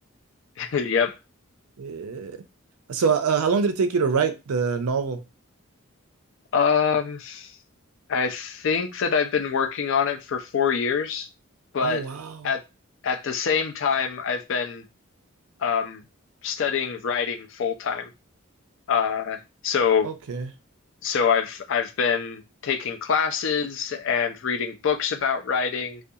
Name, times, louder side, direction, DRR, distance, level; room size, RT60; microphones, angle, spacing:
voice 1, 0.6-1.1 6.5-7.5 8.1-11.3 11.7-12.1 12.4-12.6 13.0-14.8 15.6-16.0 16.4-18.1 18.9-19.4 19.6-20.1 21.0-26.0, left 6 dB, 60° left, 0.4 m, -25 dB
voice 2, 1.8-2.4 2.9-5.2 11.8-12.5 20.0-20.5, right 5 dB, 85° right, 0.4 m, -25 dB
2.4 x 2.3 x 2.7 m
head